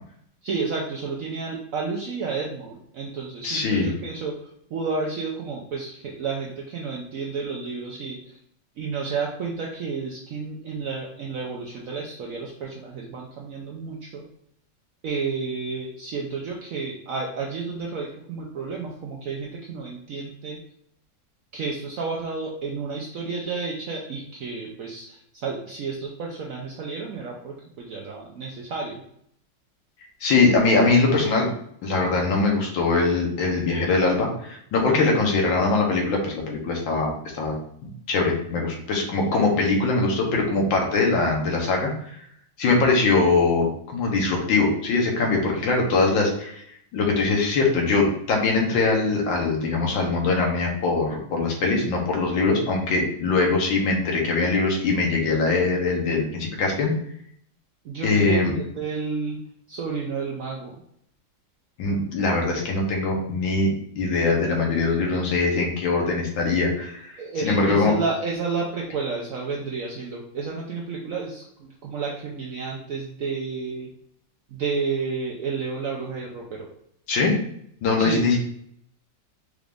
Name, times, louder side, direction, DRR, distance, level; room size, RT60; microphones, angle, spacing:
voice 1, 0.4-4.3 4.7-8.4 8.8-14.2 15.0-20.6 21.5-29.0 57.8-59.4 59.7-60.7 67.2-73.9 74.5-76.7 78.0-78.2, right 4 dB, 70° right, -2 dB, 0.8 m, -31 dB
voice 2, 3.4-3.9 30.2-31.5 31.8-37.5 38.1-42.2 42.6-46.6 46.9-56.9 58.0-58.5 61.8-63.7 64.0-67.9 77.1-77.4 77.8-78.4, left 3 dB, 80° left, 0 dB, 1.7 m, -22 dB
4.8 x 2.5 x 3.4 m, 0.68 s
omnidirectional pair, 2.0 m